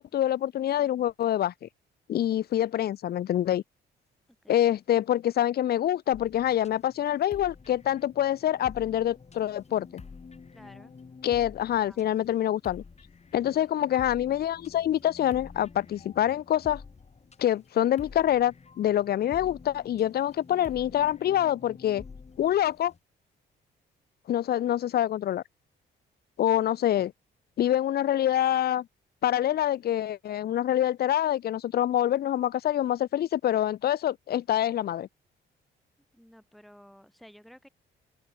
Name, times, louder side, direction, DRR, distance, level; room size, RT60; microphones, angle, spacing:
voice 1, 0.0-1.7 2.1-3.6 4.5-10.0 11.2-12.8 13.3-16.8 17.4-22.0 22.4-22.9 24.3-25.4 26.4-27.1 27.6-28.9 29.2-35.1, left 11 dB, 50° left, 0.5 m, -26 dB
sound 1, 6.1-23.0, left 5 dB, 35° left, 5.6 m, -49 dB
voice 2, 10.5-10.9 11.8-12.1 36.1-37.7, equal, ahead, 2.7 m, -53 dB
open air
cardioid pair, 90°, 20 cm